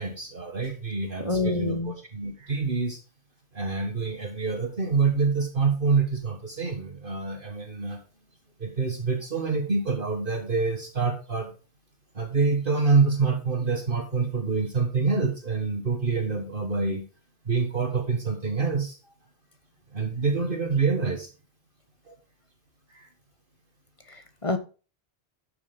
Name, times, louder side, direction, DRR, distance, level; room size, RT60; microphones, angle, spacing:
voice 1, 0.0-3.0 3.5-8.0 8.6-11.5 12.1-17.0 17.4-19.0 19.9-21.3 22.1-22.2 22.9-23.1, right 4 dB, 55° right, 1.8 m, -26 dB
voice 2, 1.2-1.9 24.1-24.6, left 3 dB, 30° left, 1.2 m, -27 dB
12.0 x 7.0 x 3.7 m
omnidirectional pair, 1.1 m